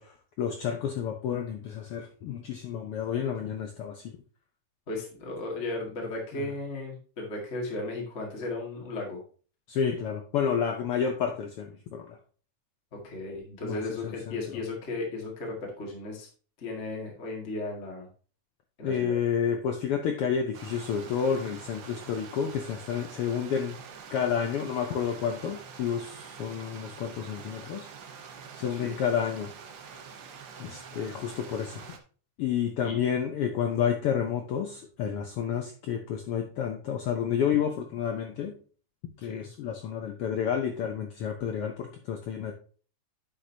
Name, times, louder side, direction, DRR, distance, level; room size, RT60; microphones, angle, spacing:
voice 1, 0.0-4.1 6.4-6.5 9.7-12.2 13.6-14.4 18.8-23.8 24.1-27.9 28.6-29.5 30.6-31.9 32.4-38.5 39.2-42.6, left 8 dB, 80° left, 4 dB, 1.3 m, -30 dB
voice 2, 4.9-9.2 13.0-16.3 16.6-18.1 18.8-19.2 28.7-28.9 32.8-33.0 39.2-39.5, left 2 dB, 25° left, -2 dB, 1.8 m, -35 dB
Stream, 20.5-32.0, right 6 dB, 85° right, 1.0 m, -46 dB
10.0 x 6.5 x 2.7 m, 0.40 s
omnidirectional pair, 3.5 m